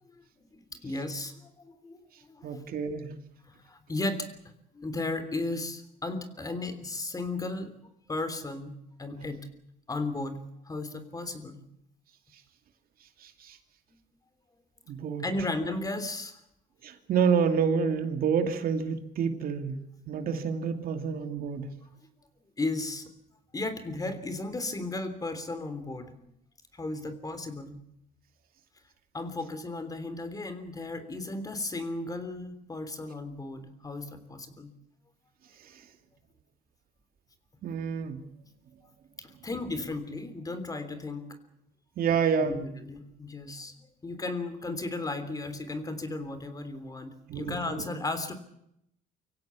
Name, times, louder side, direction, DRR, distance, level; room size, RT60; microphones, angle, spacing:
voice 1, 0.5-2.5 3.5-4.3 4.7-7.7 8.1-8.7 9.0-9.5 9.9-10.4 10.6-11.6 15.2-16.4 22.6-23.1 23.5-26.1 26.7-27.8 29.1-34.7 39.2-41.3 42.4-48.3, left 2 dB, 20° left, 10 dB, 3.4 m, -35 dB
voice 2, 2.4-3.2 13.2-13.6 14.9-15.2 16.8-19.8 20.1-21.7 37.6-38.2 42.0-42.6 47.3-47.8, right 6 dB, 60° right, 7 dB, 2.6 m, -28 dB
24.5 x 16.5 x 8.6 m, 0.78 s
cardioid pair, 110°, 17 cm